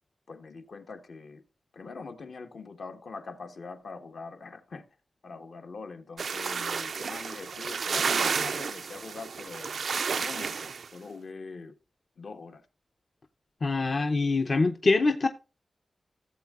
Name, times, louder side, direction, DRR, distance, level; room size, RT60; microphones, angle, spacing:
voice 1, 0.3-1.4 1.7-4.8 5.2-9.8 10.2-11.8 12.2-12.6, left 4 dB, 70° left, 1.1 m, -43 dB
sound 1, 6.2-10.9, right 5 dB, 75° right, 0.3 m, -31 dB
voice 2, 13.6-15.3, left 3 dB, 45° left, 0.6 m, -24 dB
15.5 x 7.4 x 2.4 m
wide cardioid pair, 115°, 0 cm